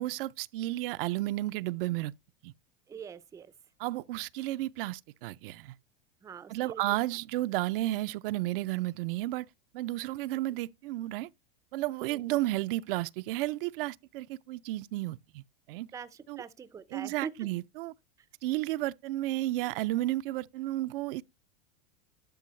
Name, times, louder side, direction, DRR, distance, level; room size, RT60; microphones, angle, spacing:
voice 1, 0.0-2.1 2.4-2.5 3.8-5.7 6.5-9.5 9.7-11.3 11.7-15.4 15.7-15.9 16.3-16.4 16.9-17.9 18.4-21.2, right 17 dB, 65° right, 0.4 m, -32 dB
voice 2, 2.9-3.5 6.2-7.0 10.3-10.4 12.0-12.3 15.9-17.5, right 7 dB, 10° right, 0.4 m, -44 dB
11.5 x 5.2 x 3.1 m
supercardioid pair, 125°, 30 cm